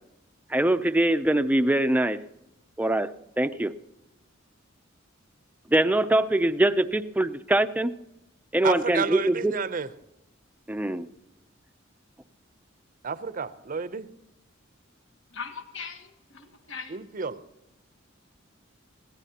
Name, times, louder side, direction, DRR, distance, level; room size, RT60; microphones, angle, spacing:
voice 1, 0.5-2.2 2.8-3.1 3.4-3.7 5.7-7.9 8.5-9.5 10.7-11.1, right 1 dB, 10° right, 0.5 m, -23 dB
voice 2, 8.6-9.9 13.0-14.1 16.9-17.4, right 5 dB, 45° right, 0.6 m, -31 dB
voice 3, 15.3-17.0, left 5 dB, 70° left, 1.4 m, -40 dB
21.5 x 15.5 x 2.9 m
head